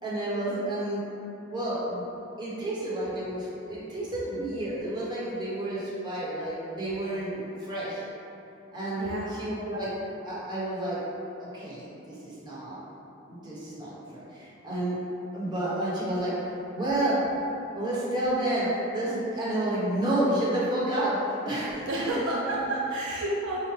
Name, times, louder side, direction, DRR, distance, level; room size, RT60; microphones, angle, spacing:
voice 1, 0.0-1.0 1.5-2.0 2.4-8.0 8.7-9.9 10.2-11.0 11.4-12.8 13.3-13.9 14.3-15.0 15.3-16.3 16.7-17.2 17.7-22.7, right 1 dB, 20° right, -9 dB, 1.0 m, -30 dB
voice 2, 9.0-9.3 21.9-23.7, right 1 dB, 60° right, -5 dB, 0.4 m, -30 dB
4.7 x 2.1 x 3.2 m, 3.0 s
head